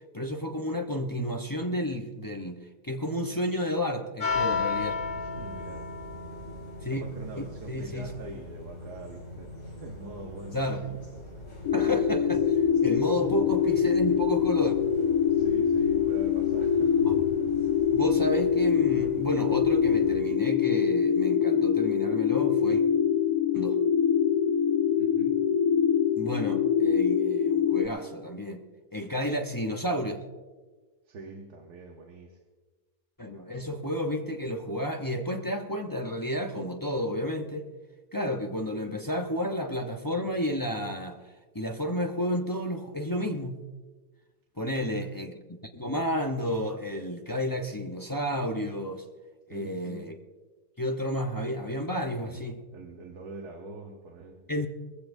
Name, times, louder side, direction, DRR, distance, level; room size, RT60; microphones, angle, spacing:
voice 1, 0.1-2.6 2.8-5.0 6.8-7.0 7.4-8.1 10.5-10.9 11.7-14.7 17.0-17.2 17.9-22.8 23.5-23.7 26.1-28.6 28.9-30.2 33.2-37.6 38.1-41.2 41.5-43.6 44.6-45.4 45.7-49.0 49.5-50.2 50.8-52.6 54.5-54.7, equal, 20° left, 3 dB, 0.6 m, -31 dB
sound 1, 4.2-20.2, left 4 dB, 55° left, 4.7 m, -38 dB
voice 2, 5.2-5.9 6.9-11.4 15.3-17.0 25.0-25.4 31.1-32.4 44.7-45.2 49.5-50.1 52.1-54.5, right 2 dB, 85° right, 2 dB, 1.7 m, -44 dB
sound 2, 11.6-27.9, left 8 dB, 75° left, 1.0 m, -24 dB
20.5 x 15.0 x 2.7 m, 1.3 s
omnidirectional pair, 1.6 m